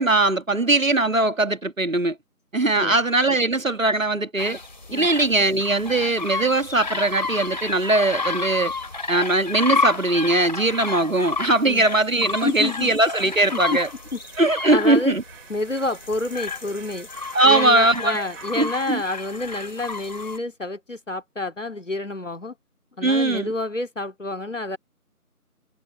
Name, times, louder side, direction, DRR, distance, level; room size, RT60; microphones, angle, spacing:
voice 1, 0.0-2.2 2.5-4.6 4.9-8.7 9.1-13.9 14.4-15.2 17.3-18.3 18.6-19.0 23.0-23.5, right 2 dB, 60° right, 1.7 m, -20 dB
sound 1, 4.4-20.4, left 3 dB, 30° left, 2.8 m, -31 dB
sound 2, 8.0-19.0, right 20 dB, 5° right, 4.1 m, -51 dB
voice 2, 12.4-12.9 13.5-13.8 14.1-14.2 14.7-15.1 15.5-17.1 17.4-22.5 23.0-24.8, left 2 dB, 55° left, 2.5 m, -28 dB
figure-of-eight pair, 170°, 46 cm